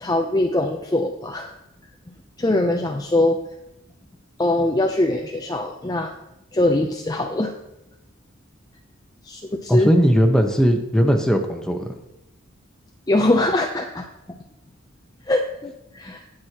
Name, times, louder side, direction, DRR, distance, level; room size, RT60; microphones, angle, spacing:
voice 1, 0.0-1.5 2.4-3.4 4.4-6.1 6.5-7.5 9.3-9.9 13.1-14.4 15.3-16.2, left 1 dB, 20° left, 3 dB, 0.6 m, -22 dB
voice 2, 9.7-11.9, equal, 5° left, 3 dB, 1.0 m, -18 dB
19.0 x 6.4 x 3.0 m, 0.89 s
head